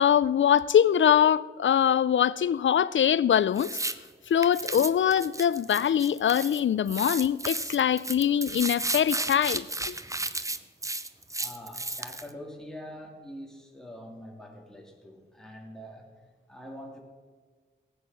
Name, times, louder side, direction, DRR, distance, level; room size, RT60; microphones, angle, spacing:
voice 1, 0.0-3.7 4.3-10.0, left 9 dB, 75° left, 0.4 m, -23 dB
sound 1, 3.6-4.0 4.4-6.6 6.9-12.3, right 2 dB, 15° right, 0.6 m, -33 dB
voice 2, 11.4-16.1 16.5-17.0, equal, 5° left, 2.5 m, -44 dB
18.5 x 8.1 x 6.0 m
wide cardioid pair, 110°, 20 cm